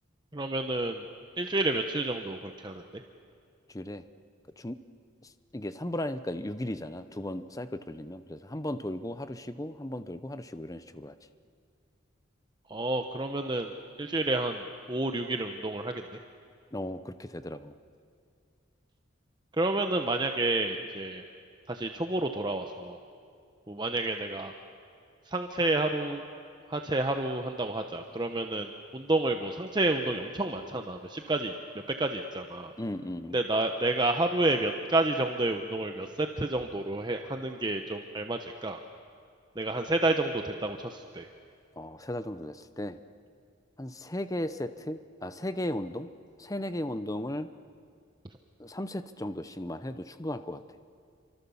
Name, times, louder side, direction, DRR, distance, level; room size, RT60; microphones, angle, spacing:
voice 1, 0.3-1.0 1.4-2.8 12.7-13.7 14.0-16.0 19.6-21.2 21.7-23.0 23.7-24.5 25.3-26.2 26.7-31.5 32.0-32.7 33.3-38.8 39.6-41.3, right 2 dB, 20° right, 5 dB, 0.9 m, -30 dB
voice 2, 5.2-11.1 16.7-17.7 32.8-33.4 41.8-43.0 43.8-46.1 46.4-47.5 48.6-50.6, left 1 dB, 15° left, 11 dB, 0.8 m, -36 dB
28.5 x 25.0 x 7.2 m, 2.4 s
head